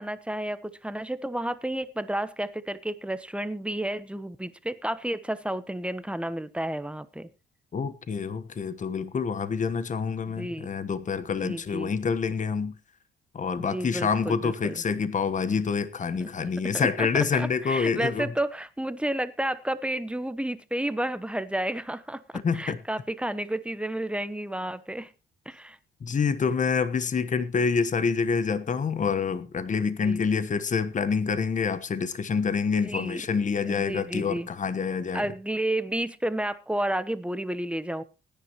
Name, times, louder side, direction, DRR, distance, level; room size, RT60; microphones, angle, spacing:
voice 1, 0.0-7.3 10.4-10.7 11.4-11.9 13.6-14.8 16.2-16.3 16.6-22.2 22.5-25.1 25.5-25.8 30.0-30.2 32.8-33.3 33.6-34.5 35.1-38.0, right 1 dB, 5° right, 1.0 m, -31 dB
voice 2, 7.7-12.7 13.3-18.3 22.3-22.8 26.0-35.3, left 5 dB, 40° left, 1.2 m, -27 dB
20.0 x 10.0 x 3.0 m
cardioid pair, 90°, 20 cm